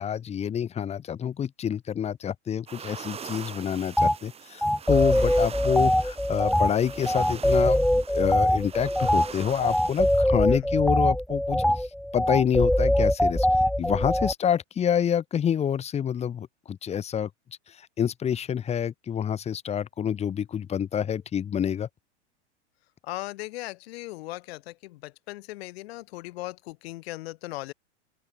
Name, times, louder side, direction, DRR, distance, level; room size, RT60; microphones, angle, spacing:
voice 1, 0.0-11.9 12.1-13.5 13.8-17.3 17.7-21.9, left 8 dB, 20° left, 1.0 m, -27 dB
sound 1, 2.7-10.2, right 7 dB, 15° right, 1.4 m, -42 dB
sound 2, 4.0-4.2 4.6-14.3, equal, ahead, 0.4 m, -23 dB
voice 2, 23.0-27.7, left 19 dB, 55° left, 2.7 m, -38 dB
open air
hypercardioid pair, 105°, 36 cm